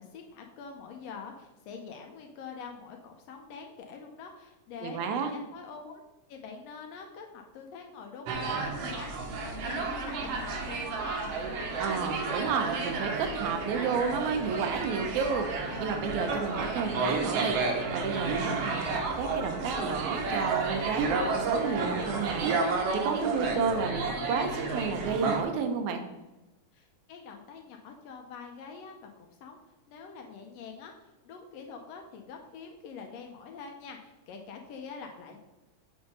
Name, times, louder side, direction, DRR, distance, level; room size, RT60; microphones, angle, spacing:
voice 1, 0.0-6.0 6.3-8.3 8.6-11.3 26.7-29.6 29.9-35.4, left 5 dB, 75° left, 3 dB, 1.7 m, -45 dB
voice 2, 4.8-5.3 11.8-22.6 23.0-24.0 24.3-26.0, right 5 dB, 85° right, 6 dB, 2.2 m, -31 dB
sound 1, 8.3-25.4, right 4 dB, 65° right, 1.7 m, -31 dB
6.9 x 3.6 x 5.3 m, 1.0 s
omnidirectional pair, 3.3 m